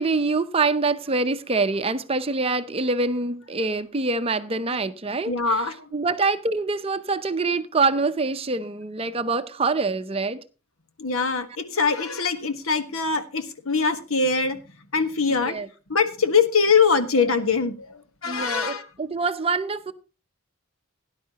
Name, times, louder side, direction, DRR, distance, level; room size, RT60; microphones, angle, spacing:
voice 1, 0.0-5.6 5.9-10.4 15.3-15.7 18.2-19.9, right 3 dB, 25° right, 0.6 m, -25 dB
voice 2, 5.3-5.7 11.0-14.6 14.9-15.6 15.9-17.9 18.2-18.9, left 5 dB, 75° left, 1.4 m, -22 dB
17.5 x 10.5 x 2.9 m
head